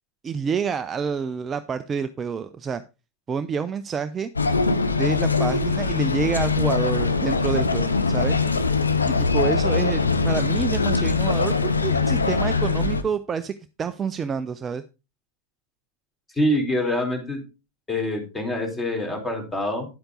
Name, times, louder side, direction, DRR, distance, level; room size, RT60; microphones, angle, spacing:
voice 1, 0.2-2.8 3.3-4.3 5.0-8.4 9.2-14.8, right 6 dB, 20° right, 11 dB, 0.6 m, -28 dB
sound 1, 4.3-13.0, left 4 dB, 75° left, 1.0 m, -22 dB
voice 2, 16.4-17.4 17.9-19.9, left 1 dB, 15° left, 3 dB, 4.0 m, -25 dB
10.5 x 8.0 x 3.9 m, 0.29 s
figure-of-eight pair, 90°, 0 cm